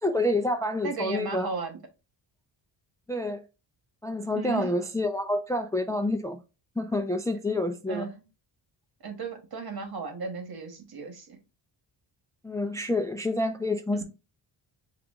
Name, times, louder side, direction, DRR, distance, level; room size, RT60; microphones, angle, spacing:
voice 1, 0.0-1.5 3.1-3.4 4.0-6.4 6.8-8.1 12.4-14.0, left 1 dB, 5° left, 0.4 m, -28 dB
voice 2, 0.8-1.8 4.3-4.7 7.9-8.2 9.0-11.4 14.0-14.1, right 4 dB, 50° right, 1.4 m, -35 dB
5.9 x 2.5 x 3.5 m
cardioid pair, 80°, 46 cm